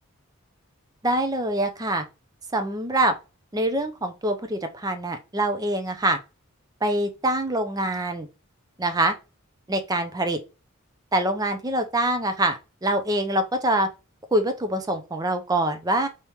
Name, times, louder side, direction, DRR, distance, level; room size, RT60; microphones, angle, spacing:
voice 1, 1.0-2.0 2.5-3.1 3.5-6.2 6.8-8.3 8.8-9.1 9.7-10.4 11.1-13.9 14.3-16.1, right 1 dB, 15° right, 0.4 m, -24 dB
3.5 x 2.9 x 2.8 m
head